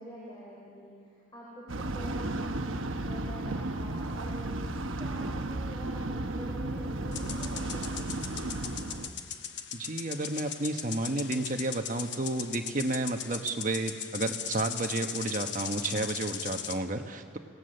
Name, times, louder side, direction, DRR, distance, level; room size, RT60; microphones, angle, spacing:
voice 1, 0.0-4.5 5.0-8.1, equal, 20° left, -5 dB, 4.1 m, -46 dB
sound 1, 1.7-9.1, right 2 dB, 85° right, 1.0 m, -34 dB
sound 2, 7.1-16.8, left 9 dB, 60° left, 1.0 m, -39 dB
voice 2, 9.7-17.4, right 2 dB, 40° right, 5 dB, 1.2 m, -31 dB
26.0 x 18.0 x 6.7 m, 2.3 s
head